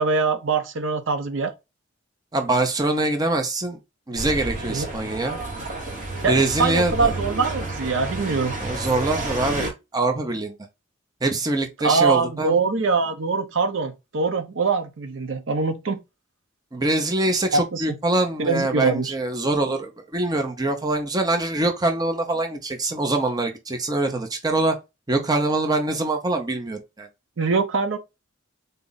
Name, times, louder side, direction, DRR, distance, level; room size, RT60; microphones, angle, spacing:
voice 1, 0.0-1.5 4.7-4.8 6.2-8.6 11.8-16.0 17.5-18.0 18.4-19.1 27.4-28.0, right 4 dB, 70° right, 0.6 m, -23 dB
voice 2, 2.3-3.8 4.1-5.4 6.3-7.1 8.6-10.5 11.2-12.5 16.7-24.8 25.1-27.1, right 2 dB, 20° right, 0.6 m, -24 dB
sound 1, 4.2-9.7, right 2 dB, 40° right, 1.3 m, -30 dB
4.0 x 2.4 x 3.9 m
head